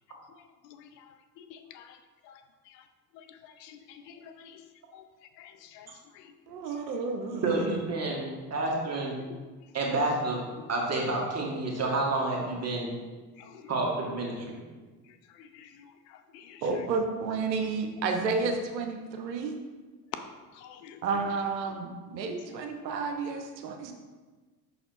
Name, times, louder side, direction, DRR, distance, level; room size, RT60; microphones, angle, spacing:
voice 1, 0.6-1.0 1.4-2.0 2.3-2.4 3.1-4.6 4.9-5.0 5.4-5.9 6.2-6.3 13.4-13.6 15.4-15.8 16.3-16.6 20.5-21.0, left 8 dB, 70° left, 8 dB, 0.7 m, -50 dB
voice 2, 6.5-7.8 16.6-19.6 21.0-23.9, right 4 dB, 90° right, 5 dB, 0.7 m, -31 dB
voice 3, 7.4-9.2 9.7-10.4 10.7-12.9 13.7-14.6, right 2 dB, 30° right, -2 dB, 1.8 m, -29 dB
5.9 x 4.2 x 4.1 m, 1.3 s
hypercardioid pair, 70°, 50 cm